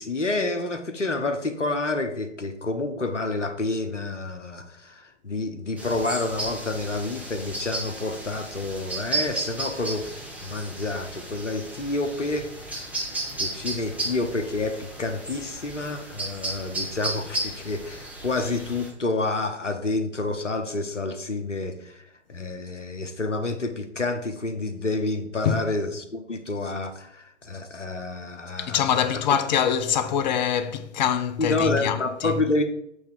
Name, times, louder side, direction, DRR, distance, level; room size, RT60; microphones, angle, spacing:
voice 1, 0.0-12.8 13.4-22.0 22.3-28.8 31.4-32.6, left 2 dB, 90° left, 1.1 m, -29 dB
sound 1, 5.8-18.9, right 2 dB, 5° right, 1.7 m, -34 dB
voice 2, 28.6-32.4, left 8 dB, 40° left, 0.7 m, -24 dB
8.3 x 3.5 x 6.6 m
figure-of-eight pair, 115°, 35 cm